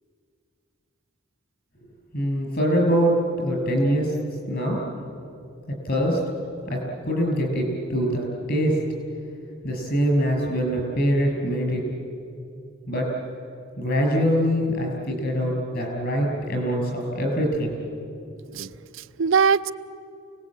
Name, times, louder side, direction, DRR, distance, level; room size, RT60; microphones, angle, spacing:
voice 1, 2.1-4.1 4.5-4.8 5.8-6.2 6.7-8.8 9.6-11.8 12.9-13.1 13.8-17.8, equal, 50° left, 1 dB, 6.4 m, -23 dB
voice 2, 18.5-19.7, right 6 dB, 65° right, 12 dB, 0.5 m, -22 dB
28.5 x 19.5 x 8.8 m, 2.6 s
head